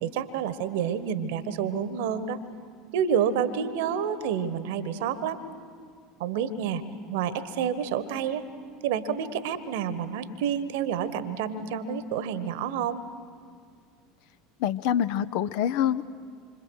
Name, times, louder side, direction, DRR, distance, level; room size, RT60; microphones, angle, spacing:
voice 1, 0.0-2.4 2.9-5.4 6.2-6.8 7.1-8.5 8.8-13.0, right 8 dB, 60° right, 14 dB, 1.3 m, -29 dB
voice 2, 14.6-16.0, left 10 dB, 55° left, 13 dB, 0.7 m, -25 dB
27.0 x 25.0 x 6.4 m, 2.2 s
figure-of-eight pair, 70°, 0 cm